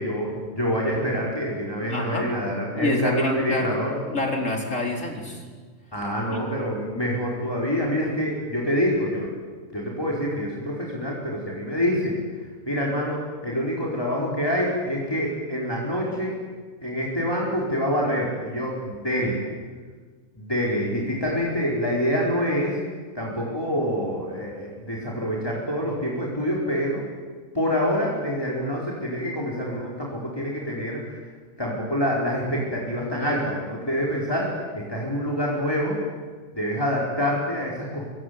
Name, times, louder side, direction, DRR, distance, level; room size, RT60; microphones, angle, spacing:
voice 1, 0.0-4.0 5.9-9.3 9.7-12.2 12.7-16.3 16.8-19.4 20.4-22.8 23.1-27.0 27.5-31.0 31.6-36.0 36.6-38.1, equal, 15° left, -4 dB, 4.9 m, -26 dB
voice 2, 1.9-2.3 2.8-3.7 4.1-5.4 6.3-6.4, left 1 dB, 65° left, 2 dB, 4.7 m, -27 dB
25.5 x 23.5 x 9.7 m, 1.5 s
omnidirectional pair, 1.4 m